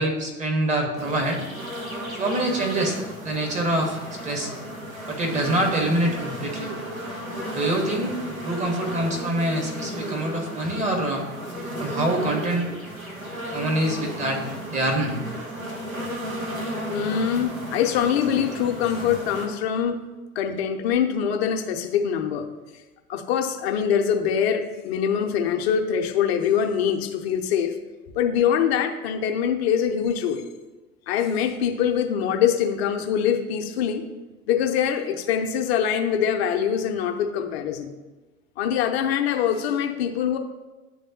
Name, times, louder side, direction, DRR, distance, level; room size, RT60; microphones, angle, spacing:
voice 1, 0.0-1.4 2.2-3.0 3.2-4.5 5.1-6.7 7.5-8.2 8.4-11.2 11.8-12.7 13.5-14.4 14.7-15.2, right 1 dB, 20° right, 0 dB, 1.0 m, -25 dB
sound 1, 1.0-19.5, equal, 80° right, 1.4 m, -34 dB
voice 2, 16.9-20.0 20.4-22.5 23.1-27.7 28.1-30.4 31.1-34.0 34.5-37.9 38.6-40.4, left 8 dB, 50° left, 5 dB, 0.7 m, -24 dB
10.0 x 3.4 x 2.8 m, 1.2 s
figure-of-eight pair, 80°, 41 cm